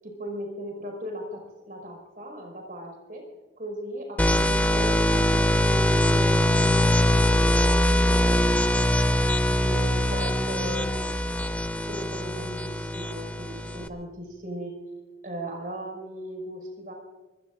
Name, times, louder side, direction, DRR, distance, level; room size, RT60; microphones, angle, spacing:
voice 1, 0.0-3.2 3.6-9.1 9.6-10.9 11.8-14.7 15.2-16.9, right 1 dB, 45° right, 1 dB, 5.5 m, -38 dB
sound 1, 4.2-13.9, left 1 dB, 10° left, 0.7 m, -22 dB
24.0 x 20.5 x 2.6 m, 1.3 s
head